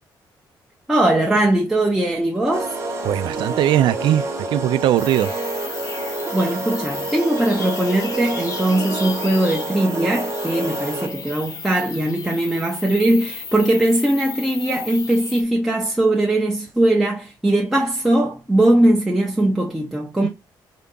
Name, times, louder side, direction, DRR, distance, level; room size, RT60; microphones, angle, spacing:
voice 1, 0.9-2.7 6.3-20.3, right 1 dB, 5° right, 0.6 m, -20 dB
sound 1, 2.5-11.3, right 3 dB, 35° right, 1.0 m, -28 dB
voice 2, 3.0-5.4 20.2-20.3, right 12 dB, 80° right, 0.4 m, -20 dB
sound 2, 5.0-15.4, left 5 dB, 45° left, 0.8 m, -34 dB
3.8 x 2.3 x 3.7 m
cardioid pair, 165°, 8 cm